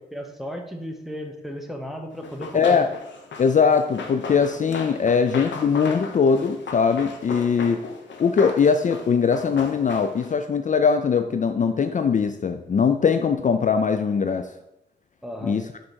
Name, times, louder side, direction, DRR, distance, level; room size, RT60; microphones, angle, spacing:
voice 1, 0.1-2.8 15.2-15.6, equal, ahead, 3 dB, 1.0 m, -35 dB
Run, 2.2-10.4, left 4 dB, 85° left, 0.9 m, -37 dB
voice 2, 2.5-2.9 3.4-7.8 8.2-14.5 15.4-15.6, left 6 dB, 45° left, 8 dB, 0.4 m, -21 dB
6.2 x 3.9 x 6.2 m, 0.87 s
wide cardioid pair, 105°, 19 cm